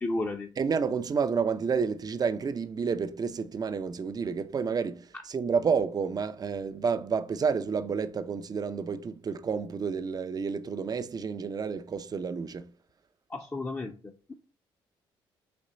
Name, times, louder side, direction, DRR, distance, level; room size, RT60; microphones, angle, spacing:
voice 1, 0.0-0.5 13.3-14.3, left 2 dB, 20° left, 0.6 m, -33 dB
voice 2, 0.6-12.7, right 5 dB, 40° right, 0.5 m, -30 dB
4.3 x 2.9 x 4.0 m
supercardioid pair, 65°, 10 cm